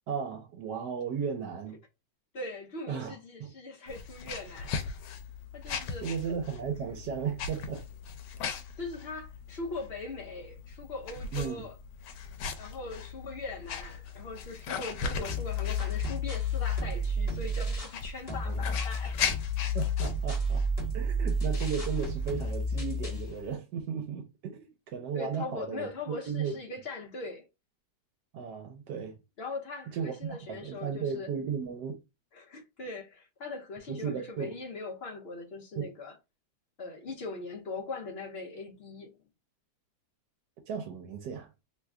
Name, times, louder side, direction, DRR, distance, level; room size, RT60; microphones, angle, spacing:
voice 1, 0.1-1.8 2.9-3.1 3.4-3.5 5.7-7.8 11.3-11.6 18.4-18.6 19.7-20.6 20.9-26.5 28.3-29.2 29.9-32.0 33.9-34.5 35.8-35.9 40.7-41.5, right 7 dB, 80° right, 1.2 m, -35 dB
voice 2, 2.3-4.8 5.5-6.1 8.8-11.7 12.6-19.2 25.1-27.4 29.4-31.3 32.3-36.1 36.8-39.1, left 3 dB, 60° left, 0.6 m, -40 dB
sound 1, 3.9-23.5, left 6 dB, 90° left, 1.3 m, -39 dB
sound 2, 15.3-18.0 18.3-23.3, left 1 dB, 25° left, 1.0 m, -31 dB
3.1 x 2.2 x 3.5 m
omnidirectional pair, 1.8 m